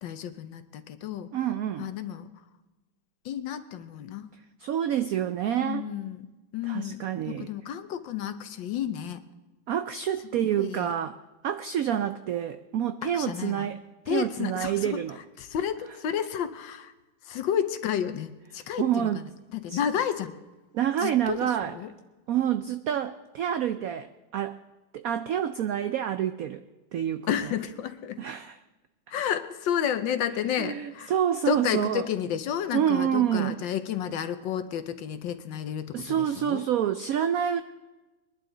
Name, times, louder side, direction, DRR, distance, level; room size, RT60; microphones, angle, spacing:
voice 1, 0.0-1.3 1.8-2.3 3.2-4.3 5.6-6.3 6.5-9.2 10.3-10.9 13.0-13.7 14.1-15.0 15.4-16.9 17.2-19.2 19.5-20.3 21.0-21.9 27.3-28.2 29.1-31.1 31.5-36.6, left 9 dB, 70° left, 10 dB, 1.5 m, -31 dB
voice 2, 1.3-1.9 4.6-5.9 6.7-7.5 9.7-11.1 11.4-13.8 14.1-15.2 18.8-19.2 19.7-19.8 20.7-21.7 22.3-24.6 24.9-26.6 26.9-27.3 28.2-28.6 30.6-32.1 32.7-33.6 35.9-37.6, right 10 dB, 85° right, 10 dB, 0.7 m, -27 dB
21.5 x 11.5 x 3.9 m, 1.1 s
omnidirectional pair, 2.1 m